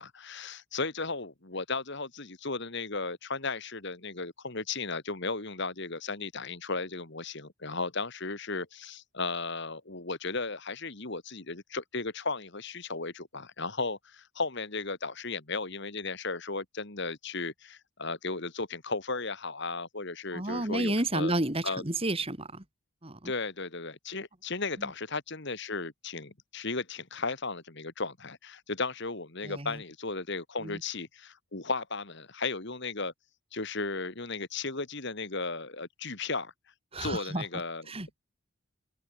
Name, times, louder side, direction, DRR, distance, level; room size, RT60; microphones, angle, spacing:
voice 1, 0.0-21.4 21.6-21.8 23.2-33.1 33.5-36.5 37.0-37.9, left 3 dB, 50° left, 2.1 m, -35 dB
voice 2, 20.3-22.6 23.0-23.3 24.8-24.9 29.4-29.8 30.6-30.8 36.9-37.4 37.9-38.2, right 2 dB, 25° right, 2.5 m, -31 dB
open air
head